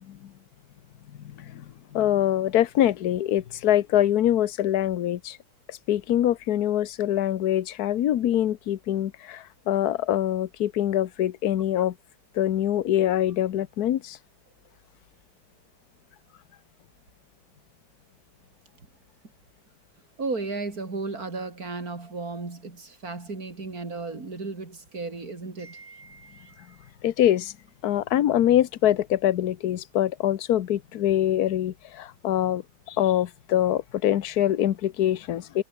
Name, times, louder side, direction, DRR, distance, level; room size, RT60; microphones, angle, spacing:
voice 1, 1.2-1.6 1.9-5.4 5.7-11.9 12.3-14.2 27.0-27.5 27.8-32.6 32.9-35.6, left 11 dB, 60° left, 1.3 m, -24 dB
voice 2, 20.2-26.9, right 3 dB, 50° right, 4.4 m, -35 dB
omnidirectional pair, 2.0 m